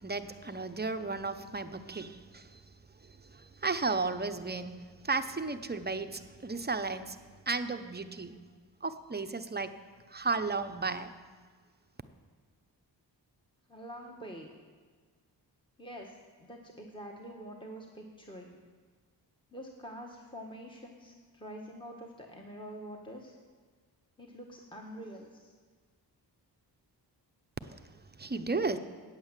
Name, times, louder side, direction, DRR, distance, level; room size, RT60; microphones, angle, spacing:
voice 1, 0.0-2.6 3.3-7.2 7.5-8.4 8.8-9.7 10.1-11.1 27.7-27.8 28.2-28.8, right 3 dB, 20° right, 9 dB, 0.7 m, -34 dB
voice 2, 13.7-14.5 15.8-18.6 19.5-23.4 24.2-25.5, equal, 10° left, 0 dB, 1.4 m, -46 dB
9.0 x 8.4 x 7.4 m, 1.5 s
cardioid pair, 55°, 44 cm